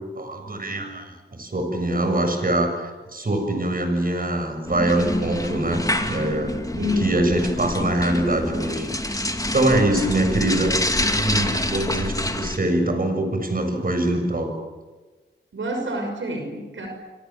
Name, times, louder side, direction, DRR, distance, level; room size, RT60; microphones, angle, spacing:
voice 1, 0.2-9.2 9.5-14.5, right 1 dB, 45° right, 5 dB, 7.3 m, -24 dB
sound 1, 4.7-12.6, left 1 dB, 15° left, 2.6 m, -27 dB
voice 2, 6.8-7.3 15.5-16.9, equal, 85° right, 3 dB, 6.0 m, -28 dB
28.5 x 25.5 x 7.6 m, 1.3 s
wide cardioid pair, 65°, 20 cm